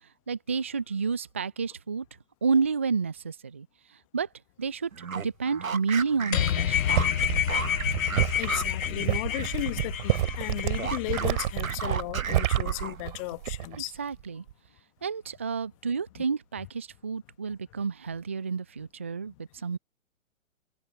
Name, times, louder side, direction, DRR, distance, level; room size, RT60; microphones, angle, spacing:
voice 1, 0.3-2.1 2.4-3.7 4.1-4.3 4.6-7.0 14.0-14.4 15.0-19.8, right 5 dB, 10° right, 0.4 m, -30 dB
sound 1, 4.9-9.6 9.9-13.2, right 5 dB, 80° right, 0.9 m, -36 dB
sound 2, 6.3-11.9, left 10 dB, 75° left, 0.5 m, -29 dB
sound 3, 6.7-13.8 14.1-14.5, right 14 dB, 35° right, 2.9 m, -29 dB
voice 2, 8.4-14.0, left 23 dB, 25° left, 1.2 m, -35 dB
figure-of-eight pair, 125°, 40 cm